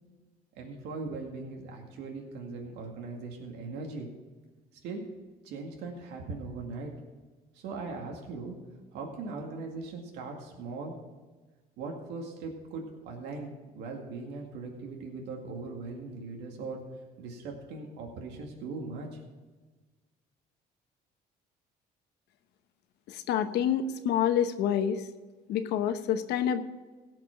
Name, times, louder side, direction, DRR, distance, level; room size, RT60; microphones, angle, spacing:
voice 1, 0.6-4.1 4.8-5.0 5.4-6.9 7.5-8.6 8.9-10.9 11.8-16.8 17.2-19.2, right 3 dB, 90° right, 1 dB, 2.1 m, -39 dB
voice 2, 23.1-25.0 25.5-26.6, left 9 dB, 80° left, 9 dB, 1.0 m, -27 dB
17.0 x 6.0 x 5.8 m, 1.3 s
cardioid pair, 110°, 17 cm